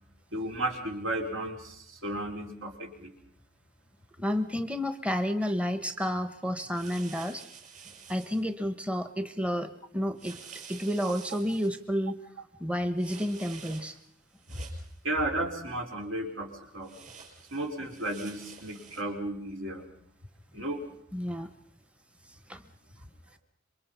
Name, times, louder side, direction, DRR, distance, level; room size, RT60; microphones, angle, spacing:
voice 1, 0.3-3.1 14.5-14.6 15.0-16.9 17.5-19.8 20.5-20.8, right 1 dB, 80° right, 1 dB, 4.7 m, -34 dB
voice 2, 4.2-7.5 8.1-10.4 10.7-12.2 12.6-14.0 21.1-21.5 22.5-22.6, equal, 5° right, 9 dB, 0.9 m, -30 dB
sound 1, 6.7-8.4 10.2-11.7 13.0-14.1 14.4-15.0 16.8-19.0, right 6 dB, 40° right, 6.0 m, -49 dB
27.0 x 23.5 x 5.6 m, 0.67 s
head